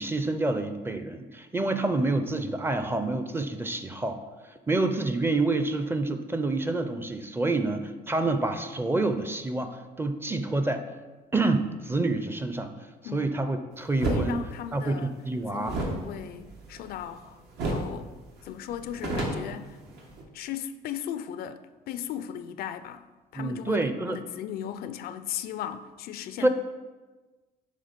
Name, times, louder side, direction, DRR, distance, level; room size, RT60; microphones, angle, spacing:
voice 1, 0.0-4.2 4.4-10.8 11.3-12.7 13.1-14.4 14.7-15.0 15.2-15.8 23.3-24.2 26.4-26.5, right 2 dB, 15° right, 0.5 m, -28 dB
voice 2, 14.0-15.1 15.5-18.1 18.4-19.8 20.3-23.0 23.3-26.5, left 10 dB, 65° left, 0.4 m, -37 dB
sound 1, 14.0-14.3 15.6-17.2 17.6-17.9 18.2-18.3 18.7-20.2, right 2 dB, 75° right, 1.3 m, -31 dB
6.5 x 3.7 x 5.2 m
cardioid pair, 110°, 17 cm